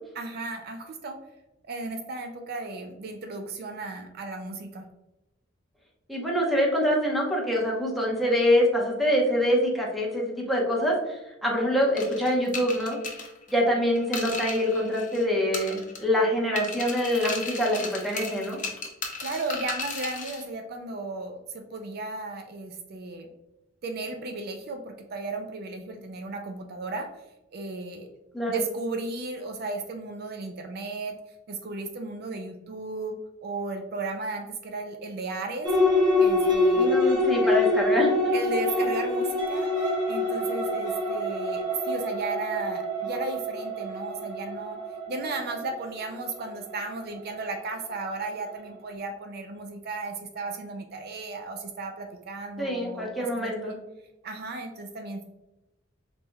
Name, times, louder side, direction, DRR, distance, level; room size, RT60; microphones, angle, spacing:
voice 1, 0.1-1.2 1.7-4.9 19.2-23.3 23.8-27.1 27.5-28.1 28.5-31.2 31.5-35.7 36.2-37.1 37.4-37.7 38.3-44.8 45.1-53.8 54.2-55.2, right 3 dB, 55° right, 5 dB, 0.4 m, -35 dB
voice 2, 6.1-13.0 13.5-18.6 28.3-28.6 36.7-38.3 52.6-53.8, equal, ahead, -3 dB, 0.8 m, -25 dB
sound 1, 12.0-15.2 15.5-16.2 16.6-20.4, left 4 dB, 45° left, 0.7 m, -35 dB
sound 2, 35.6-47.6, left 2 dB, 20° right, 1.4 m, -26 dB
4.0 x 3.4 x 2.2 m, 0.96 s
head